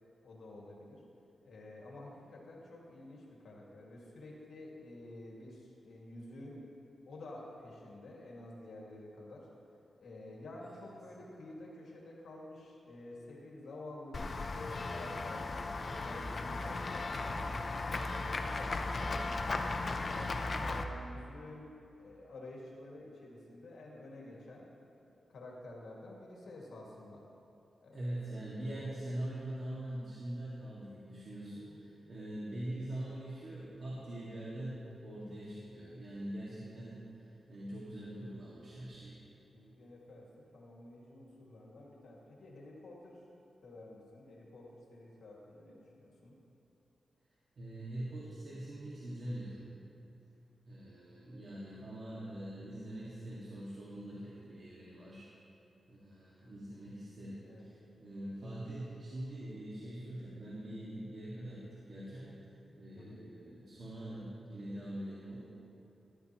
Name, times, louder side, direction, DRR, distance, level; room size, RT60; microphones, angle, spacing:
voice 1, 0.2-1.0 1.4-6.6 7.1-9.5 10.0-15.5 15.9-17.4 17.9-21.7 22.0-24.7 25.3-27.2 27.8-29.0 39.5-43.2 43.6-46.4 57.4-57.7 63.0-63.3, left 2 dB, 80° left, -3 dB, 2.1 m, -50 dB
Run / Walk footsteps / Bell, 14.1-20.8, left 3 dB, 45° left, 0.6 m, -36 dB
voice 2, 27.9-39.2 47.6-49.6 50.7-55.3 55.9-62.3 62.8-65.4, right 1 dB, 60° right, -8 dB, 1.9 m, -43 dB
13.5 x 12.0 x 3.0 m, 2.8 s
wide cardioid pair, 100°, 0 cm